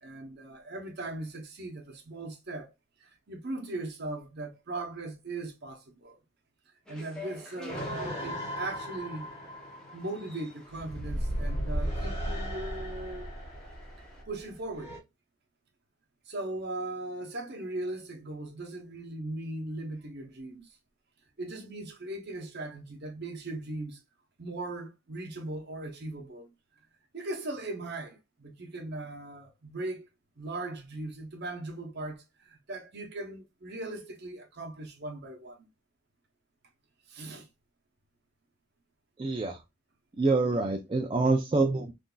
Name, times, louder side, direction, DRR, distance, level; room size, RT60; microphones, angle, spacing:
voice 1, 0.0-2.7 3.0-6.2 6.9-9.3 9.9-13.3 14.3-14.9 16.3-20.8 21.4-24.0 24.4-26.5 27.1-30.1 30.4-35.7 37.1-37.5, right 2 dB, 50° right, 0.8 m, -39 dB
sound 1, 6.9-14.2, left 2 dB, 5° left, 0.8 m, -48 dB
sound 2, 7.7-15.0, equal, 25° left, 1.4 m, -36 dB
voice 2, 39.2-39.6 40.2-41.9, right 3 dB, 25° right, 0.3 m, -26 dB
3.7 x 2.6 x 2.3 m
head